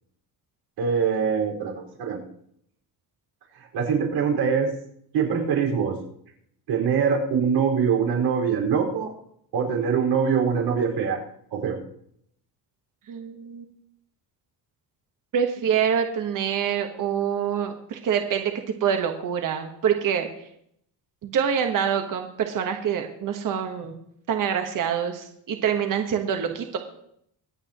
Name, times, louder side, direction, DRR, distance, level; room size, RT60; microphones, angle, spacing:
voice 1, 0.8-2.2 3.7-4.7 5.1-6.0 6.7-9.1 9.5-11.2 11.5-11.8, right 6 dB, 85° right, -2 dB, 5.2 m, -23 dB
voice 2, 13.1-13.6 15.3-18.5 18.8-20.3 21.2-24.0 24.3-26.8, right 8 dB, 50° right, 5 dB, 1.4 m, -25 dB
25.5 x 8.8 x 3.1 m, 0.70 s
cardioid pair, 145°, 40 cm